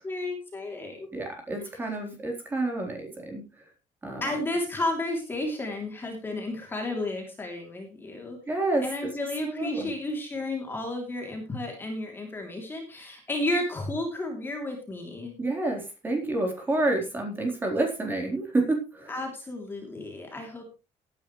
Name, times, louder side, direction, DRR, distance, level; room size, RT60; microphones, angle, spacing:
voice 1, 0.0-1.1 4.2-8.4 8.8-15.3 19.1-20.6, left 2 dB, 15° left, 2 dB, 3.0 m, -32 dB
voice 2, 1.1-3.4 4.0-4.2 8.5-8.8 9.4-9.9 15.4-19.1, right 2 dB, 15° right, 1 dB, 3.9 m, -28 dB
17.5 x 10.5 x 3.2 m, 0.29 s
cardioid pair, 175°, 13 cm